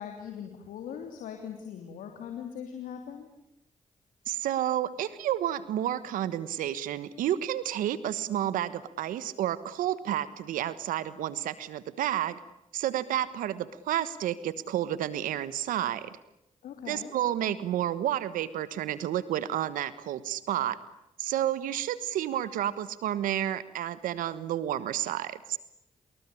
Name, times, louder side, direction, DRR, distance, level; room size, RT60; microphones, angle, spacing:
voice 1, 0.0-3.3 16.6-17.1, left 8 dB, 85° left, 4 dB, 3.2 m, -40 dB
voice 2, 4.3-12.4 12.7-16.2 16.9-20.8 21.2-25.6, right 12 dB, 85° right, 15 dB, 1.3 m, -30 dB
28.5 x 21.0 x 9.8 m, 0.84 s
supercardioid pair, 45°, 14 cm